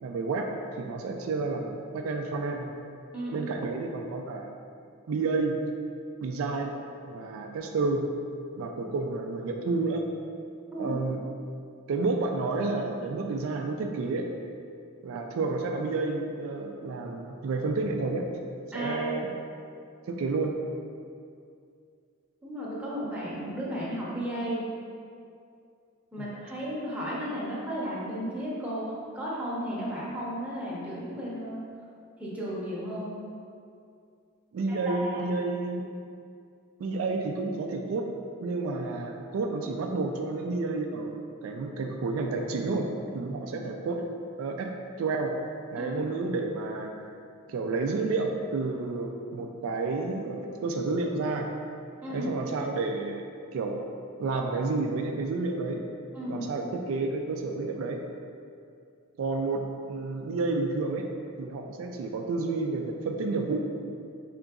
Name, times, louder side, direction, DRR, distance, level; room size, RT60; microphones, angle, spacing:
voice 1, 0.0-2.7 3.3-4.5 5.1-5.6 6.2-6.7 7.0-8.0 8.6-10.0 10.8-11.2 11.9-14.3 15.0-18.3 18.7-19.3 20.1-20.5 26.2-26.3 34.5-35.8 36.8-38.1 38.4-42.9 43.1-44.0 44.4-44.7 45.0-45.3 45.7-46.9 47.5-51.5 52.1-53.2 53.5-53.8 54.2-55.8 56.3-58.0 59.2-61.1 61.4-63.6, right 3 dB, 75° right, 3 dB, 0.3 m, -30 dB
voice 2, 3.1-3.5 10.7-11.0 18.7-19.0 22.4-24.6 26.1-31.6 32.2-33.2 34.7-35.2 43.5-43.7 45.8-45.9 52.0-52.3 56.1-56.5, equal, 5° right, -8 dB, 0.8 m, -34 dB
5.1 x 3.7 x 2.3 m, 2.4 s
head